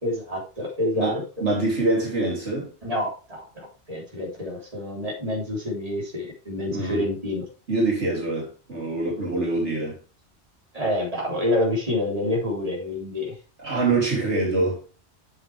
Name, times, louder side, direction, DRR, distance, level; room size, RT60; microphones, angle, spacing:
voice 1, 0.0-1.2 2.8-7.4 10.7-13.4, left 1 dB, 30° right, 3.6 m, -27 dB
voice 2, 0.9-2.7 6.7-7.0 7.7-10.0 13.6-14.8, right 2 dB, 75° right, 3.4 m, -25 dB
9.0 x 7.6 x 3.4 m
omnidirectional pair, 1.2 m